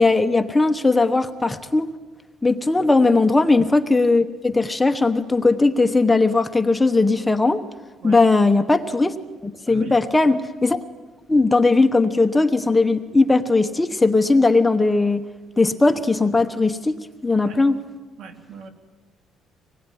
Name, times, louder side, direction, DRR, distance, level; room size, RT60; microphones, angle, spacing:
voice 1, 0.0-1.9 2.4-7.6 8.0-9.1 9.4-10.8 11.3-15.2 15.6-17.0 17.2-17.8, left 3 dB, 10° left, 7 dB, 1.0 m, -18 dB
voice 2, 9.6-10.0 17.5-17.6 18.2-18.7, right 5 dB, 65° right, 5 dB, 3.0 m, -39 dB
25.5 x 20.5 x 10.0 m, 1.3 s
cardioid pair, 150°, 0 cm